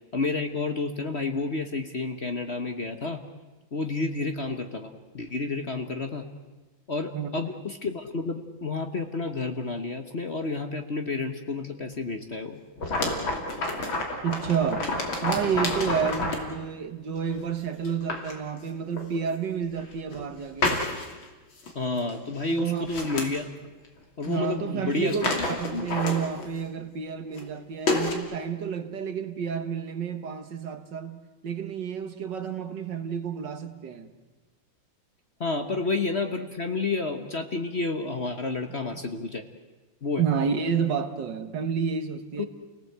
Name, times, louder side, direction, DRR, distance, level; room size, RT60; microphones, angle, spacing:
voice 1, 0.1-3.2 3.7-6.2 6.9-12.6 21.7-23.4 24.2-26.0 35.4-39.4 40.0-40.2 42.4-42.5, left 3 dB, 40° left, 1.2 m, -30 dB
voice 2, 7.1-7.5 14.2-14.9 15.2-20.8 22.5-22.9 24.3-34.1 40.2-42.5, right 7 dB, 65° right, 2.0 m, -30 dB
sound 1, 12.8-16.5 17.3-17.4 17.8-18.3 19.0-19.1 19.8-20.3 20.6-21.2 21.6-21.7 22.0-22.1 22.4-23.3 24.2-24.3 24.6-24.7 24.9-26.6 27.3-27.5 27.9-28.1, left 2 dB, 80° left, 3.5 m, -29 dB
29.5 x 18.0 x 8.1 m
omnidirectional pair, 2.1 m